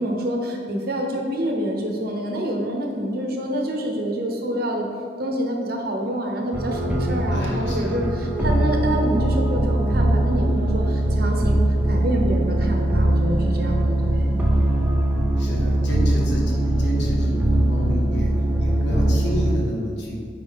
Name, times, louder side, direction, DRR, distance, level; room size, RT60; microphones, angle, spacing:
voice 1, 0.0-4.9 5.2-11.6 11.9-14.3, right 1 dB, 55° right, 1 dB, 1.0 m, -27 dB
sound 1, 6.5-19.6, right 1 dB, 10° right, 0.7 m, -21 dB
voice 2, 7.3-8.0 15.4-20.2, equal, 75° left, -3 dB, 1.6 m, -30 dB
8.9 x 4.6 x 3.6 m, 2.3 s
head